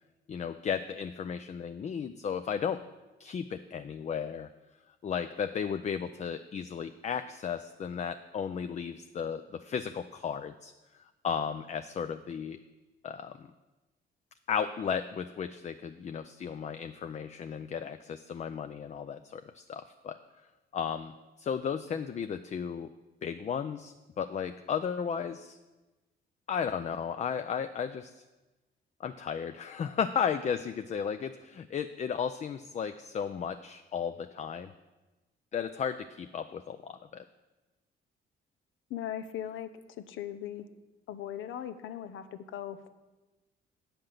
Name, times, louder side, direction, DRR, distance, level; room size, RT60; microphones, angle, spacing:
voice 1, 0.3-2.8 3.2-4.5 5.0-10.7 11.2-12.6 13.0-13.5 14.5-20.2 20.7-21.1 21.4-22.9 23.2-25.6 26.5-28.2 29.0-34.7 35.5-37.2, left 7 dB, 35° left, 10 dB, 0.4 m, -34 dB
voice 2, 38.9-39.7 40.0-40.7 41.1-42.9, left 10 dB, 85° left, 11 dB, 0.7 m, -39 dB
8.7 x 5.9 x 6.6 m, 1.1 s
cardioid pair, 90°, 20 cm